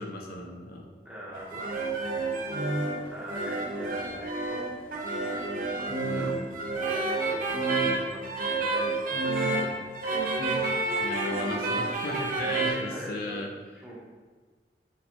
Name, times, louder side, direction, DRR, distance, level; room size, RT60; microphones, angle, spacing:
voice 1, 0.0-0.9 6.0-6.3 7.8-8.0 11.0-13.5, left 2 dB, 55° left, 1 dB, 0.4 m, -36 dB
voice 2, 1.0-1.6 3.1-4.6 5.3-6.4 6.8-7.5 8.1-10.2 12.9-14.0, equal, 5° right, -7 dB, 0.9 m, -43 dB
sound 1, 1.3-12.7, right 3 dB, 50° right, 0.7 m, -29 dB
6.6 x 2.2 x 2.9 m, 1.4 s
head